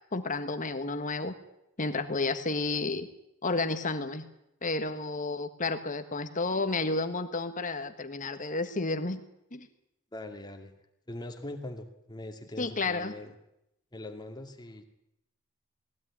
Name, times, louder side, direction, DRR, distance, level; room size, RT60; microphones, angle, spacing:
voice 1, 0.1-1.3 1.8-3.1 3.4-4.3 4.6-9.2 9.5-9.7 12.6-13.1, left 3 dB, 35° left, 9 dB, 1.5 m, -31 dB
voice 2, 10.1-10.7 11.1-13.3 13.9-14.8, left 1 dB, 20° left, 4 dB, 2.2 m, -42 dB
20.0 x 16.0 x 9.8 m, 0.82 s
head